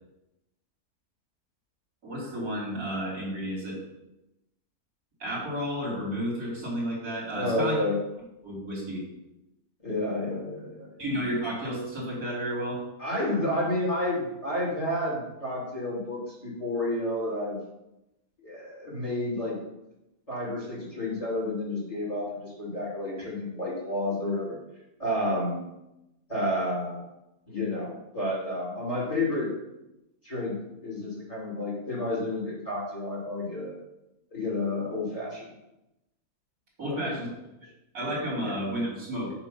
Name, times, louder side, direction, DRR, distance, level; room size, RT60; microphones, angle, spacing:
voice 1, 2.0-3.8 5.2-7.7 8.4-9.0 11.0-12.8 23.2-23.3 36.8-37.3 37.9-39.3, equal, 80° right, -6 dB, 3.5 m, -32 dB
voice 2, 7.3-8.0 9.8-11.0 13.0-17.6 18.4-19.6 20.3-24.6 25.0-25.6 26.3-27.0 27.5-29.5 30.2-30.5 30.8-33.7 34.3-35.5 36.9-37.1 38.4-38.5, left 1 dB, 25° left, -7 dB, 2.5 m, -30 dB
8.1 x 3.1 x 5.9 m, 0.91 s
omnidirectional pair, 1.6 m